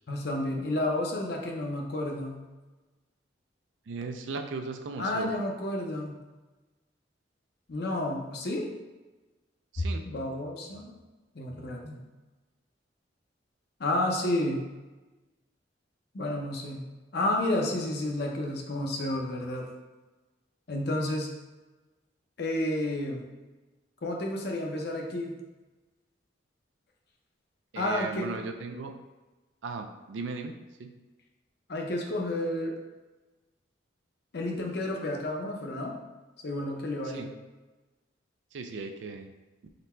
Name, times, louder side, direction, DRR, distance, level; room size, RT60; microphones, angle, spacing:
voice 1, 0.1-2.4 5.0-6.2 7.7-8.7 9.8-10.9 11.3-12.0 13.8-14.6 16.1-16.9 17.1-19.7 20.7-21.3 22.4-23.3 24.0-25.4 27.7-28.3 31.7-32.7 34.3-36.0 36.4-37.3, left 1 dB, 60° left, 0 dB, 0.6 m, -31 dB
voice 2, 3.9-5.3 9.7-10.0 27.7-28.9 29.6-30.9 37.0-37.3 38.5-39.3, right 4 dB, 80° right, 6 dB, 0.4 m, -37 dB
3.9 x 2.2 x 4.3 m, 1.2 s
head